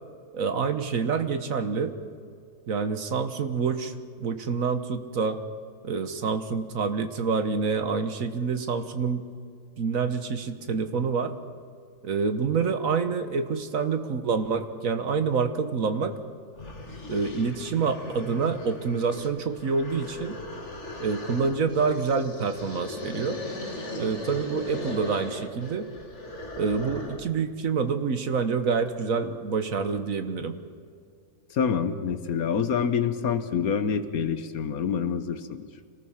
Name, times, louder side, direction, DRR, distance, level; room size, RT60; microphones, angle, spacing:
voice 1, 0.3-1.9 2.7-5.4 5.8-9.2 9.8-11.3 12.0-16.2 17.1-20.4 21.0-23.4 23.9-25.9 26.6-30.6, right 5 dB, 65° right, 9 dB, 1.6 m, -27 dB
sound 1, 16.2-16.3 16.6-27.4, left 2 dB, 50° left, 2.3 m, -38 dB
voice 2, 31.5-35.7, left 6 dB, 70° left, 11 dB, 1.5 m, -27 dB
26.5 x 19.0 x 5.8 m, 2.2 s
omnidirectional pair, 1.6 m